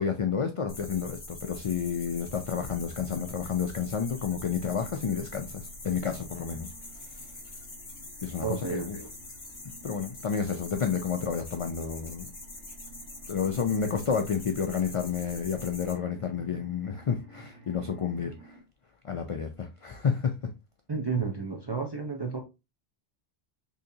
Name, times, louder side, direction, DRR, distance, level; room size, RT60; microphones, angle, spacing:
voice 1, 0.0-6.7 8.2-9.0 9.8-12.3 13.3-18.5 19.0-20.3, left 6 dB, 60° left, 0.3 m, -30 dB
sound 1, 0.7-15.9, left 2 dB, 30° left, 0.8 m, -44 dB
sound 2, 4.6-18.6, right 3 dB, 20° right, 1.5 m, -54 dB
voice 2, 8.4-9.1 20.9-22.4, right 5 dB, 40° right, 0.4 m, -32 dB
3.8 x 2.8 x 2.6 m
omnidirectional pair, 1.1 m